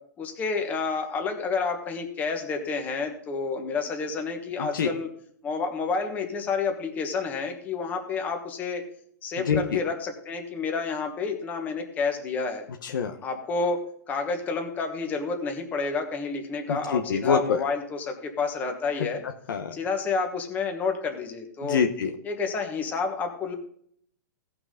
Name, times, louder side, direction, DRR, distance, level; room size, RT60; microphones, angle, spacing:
voice 1, 0.2-5.1 5.4-8.8 9.2-12.6 13.2-13.8 14.1-19.2 19.7-21.8 22.2-23.5, left 4 dB, 15° left, 4 dB, 1.3 m, -29 dB
voice 2, 9.4-9.8 12.8-13.2 16.7-17.6 19.2-19.8 21.6-22.1, left 6 dB, 80° left, 5 dB, 1.0 m, -26 dB
17.0 x 6.0 x 3.8 m, 0.63 s
hypercardioid pair, 160°, 11 cm